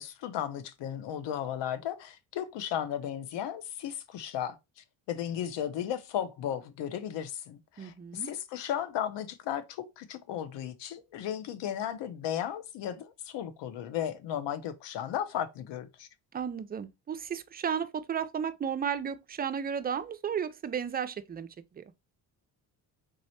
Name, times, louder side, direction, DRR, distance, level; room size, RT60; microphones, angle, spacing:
voice 1, 0.0-16.1, left 10 dB, 60° left, 0.8 m, -35 dB
voice 2, 7.8-8.3 16.3-21.5 21.7-21.8, right 7 dB, 20° right, 0.4 m, -33 dB
3.9 x 3.1 x 2.8 m
hypercardioid pair, 60°, 50 cm